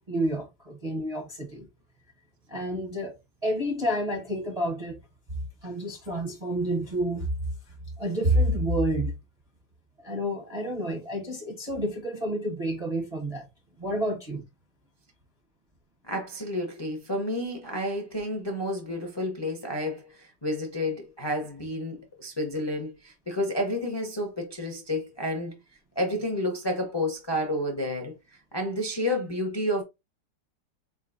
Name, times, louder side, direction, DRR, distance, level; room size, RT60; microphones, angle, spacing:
voice 1, 0.1-1.7 2.5-3.1 3.4-5.0 5.6-7.3 8.0-9.1 10.0-13.4 13.8-14.4, equal, 40° right, 0.5 m, -29 dB
voice 2, 16.1-25.6 26.0-28.1 28.5-29.8, left 1 dB, 35° left, 0.4 m, -30 dB
4.2 x 3.8 x 2.5 m
omnidirectional pair, 2.0 m